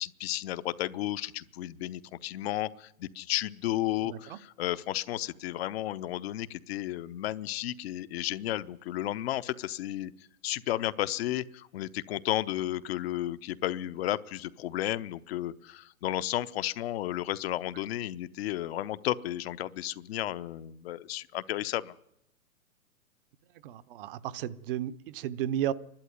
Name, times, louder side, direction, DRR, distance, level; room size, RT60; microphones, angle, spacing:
voice 1, 0.0-10.1 10.4-21.9, left 14 dB, 50° left, 0.9 m, -33 dB
voice 2, 4.0-4.4 23.6-25.7, right 11 dB, 40° right, 0.9 m, -33 dB
28.5 x 12.0 x 9.6 m
hypercardioid pair, 135°, 41 cm